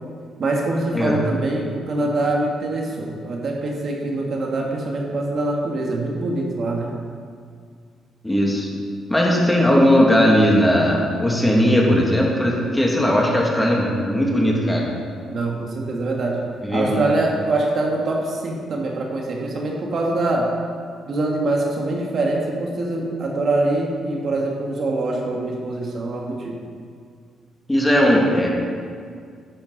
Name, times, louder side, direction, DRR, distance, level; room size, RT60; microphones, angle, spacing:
voice 1, 0.4-6.9 15.3-16.4 16.7-20.5 21.1-26.6, right 2 dB, 55° right, -1 dB, 1.9 m, -24 dB
voice 2, 8.2-8.7 9.1-14.9 16.6-17.0 27.7-28.5, equal, 10° left, -2 dB, 2.4 m, -18 dB
11.0 x 10.5 x 4.2 m, 2.1 s
cardioid pair, 90°, 0 cm